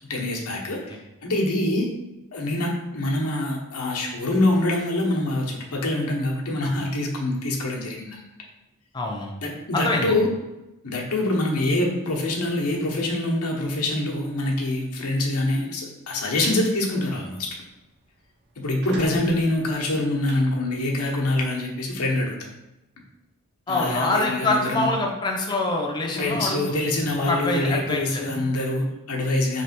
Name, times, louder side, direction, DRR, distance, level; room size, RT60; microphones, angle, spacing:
voice 1, 0.1-1.9 2.3-8.2 9.4-10.3 10.8-17.5 18.6-22.5 23.7-24.9 26.1-29.6, left 1 dB, 80° left, -1 dB, 0.9 m, -25 dB
voice 2, 8.9-9.3 9.7-10.2 23.7-26.8 27.3-28.2, left 2 dB, 20° left, 0 dB, 0.4 m, -25 dB
sound 1, 16.1-16.6 17.0-17.3 17.6-17.7 18.0-18.1 18.6-21.1, right 3 dB, 50° right, 0.6 m, -40 dB
3.3 x 2.9 x 4.3 m, 0.96 s
head